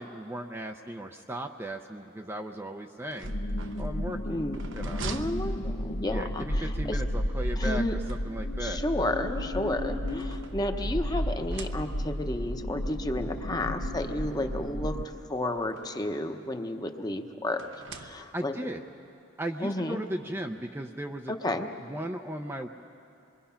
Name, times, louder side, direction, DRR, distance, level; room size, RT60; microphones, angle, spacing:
voice 1, 0.0-3.3 3.8-4.5 4.7-5.0 6.1-7.8 8.1-8.8 18.1-18.8 19.4-21.4 21.8-22.7, right 1 dB, 10° right, 3 dB, 0.5 m, -36 dB
sound 1, 3.0-6.3 7.6-8.7 9.6-11.0 11.3-12.3 13.2-13.3 13.6-13.7 14.9-16.3 17.5-18.6, right 4 dB, 65° right, 0.8 m, -45 dB
sound 2, 3.2-15.0, equal, 80° left, 1.0 m, -32 dB
voice 2, 4.2-4.6 5.0-7.0 7.6-8.0 8.6-15.0 15.3-17.6 17.9-18.7 19.6-20.0 21.3-21.7, left 1 dB, 20° left, 5 dB, 0.9 m, -32 dB
27.0 x 22.5 x 5.7 m, 2.6 s
head